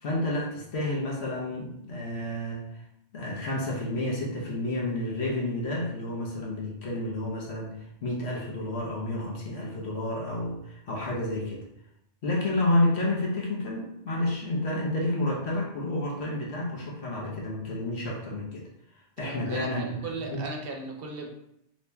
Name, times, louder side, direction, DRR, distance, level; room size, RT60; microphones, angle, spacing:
voice 1, 0.0-2.6 3.1-7.7 8.0-11.6 12.2-18.6 19.2-20.0 20.3-20.4, left 1 dB, 75° left, -2 dB, 1.2 m, -30 dB
voice 2, 19.2-21.3, right 3 dB, 65° right, 1 dB, 0.8 m, -37 dB
3.1 x 2.8 x 3.4 m, 0.76 s
omnidirectional pair, 1.1 m